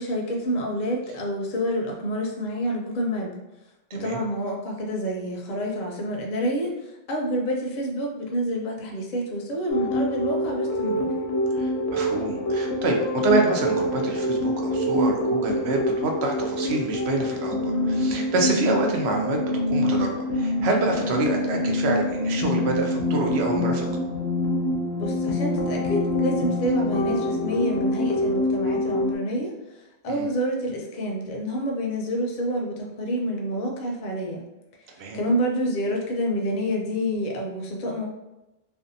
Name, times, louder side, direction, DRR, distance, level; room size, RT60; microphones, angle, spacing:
voice 1, 0.0-3.3 3.9-11.1 25.0-29.5 30.0-34.4 35.1-38.1, equal, 55° left, 0 dB, 0.6 m, -28 dB
sound 1, 9.7-29.2, left 1 dB, 80° left, 0.8 m, -26 dB
voice 2, 11.5-19.4 19.7-23.9 30.1-30.3 35.0-35.2, right 2 dB, 85° right, 1 dB, 0.8 m, -26 dB
2.6 x 2.2 x 2.5 m, 0.98 s
omnidirectional pair, 1.1 m